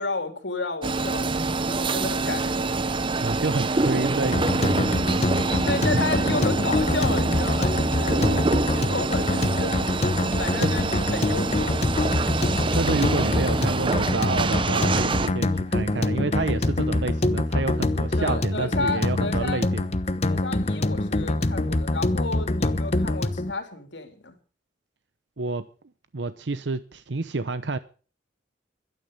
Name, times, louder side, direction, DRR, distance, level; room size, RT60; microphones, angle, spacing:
voice 1, 0.0-2.6 5.7-10.1 10.4-11.8 18.1-19.6 20.2-24.4, left 3 dB, 85° left, 3.5 m, -32 dB
sound 1, 0.8-15.3, right 3 dB, 30° right, 0.7 m, -26 dB
voice 2, 3.2-6.0 8.2-8.4 10.6-10.7 12.7-19.9 25.4-25.6 26.1-27.8, right 3 dB, 85° right, 0.8 m, -29 dB
sound 2, 4.3-23.5, left 2 dB, 40° left, 1.0 m, -25 dB
16.5 x 12.5 x 5.4 m
head